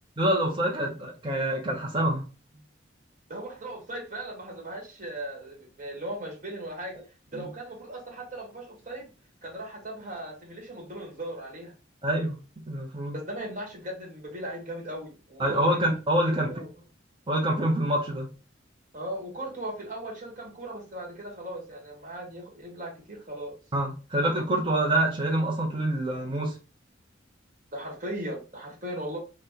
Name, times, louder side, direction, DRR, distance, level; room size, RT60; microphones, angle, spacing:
voice 1, 0.2-2.2 7.3-7.5 12.0-12.4 12.7-13.1 15.4-16.5 17.3-18.3 23.7-26.5, right 1 dB, 25° right, -1 dB, 0.6 m, -26 dB
voice 2, 3.3-7.0 7.3-9.1 9.4-11.7 13.1-15.9 16.2-16.8 18.9-23.5 27.7-29.2, right 1 dB, 40° right, -1 dB, 1.2 m, -38 dB
2.8 x 2.2 x 3.6 m, 0.32 s
head